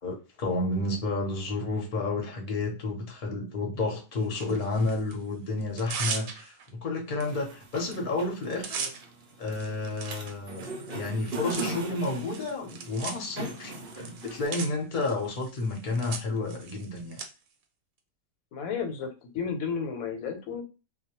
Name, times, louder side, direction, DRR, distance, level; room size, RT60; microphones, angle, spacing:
voice 1, 0.0-8.8 9.4-17.2, left 2 dB, 45° left, 1 dB, 0.8 m, -31 dB
Tearing, 4.3-5.2 5.6-6.7 7.2-7.3 7.6-7.9 8.2-17.3, right 6 dB, 85° right, 1.0 m, -39 dB
sound 1, 7.2-14.5, right 3 dB, 60° right, 0.6 m, -40 dB
voice 2, 18.5-20.6, left 6 dB, 85° left, 4 dB, 1.0 m, -33 dB
2.2 x 2.1 x 2.8 m, 0.31 s
omnidirectional pair, 1.5 m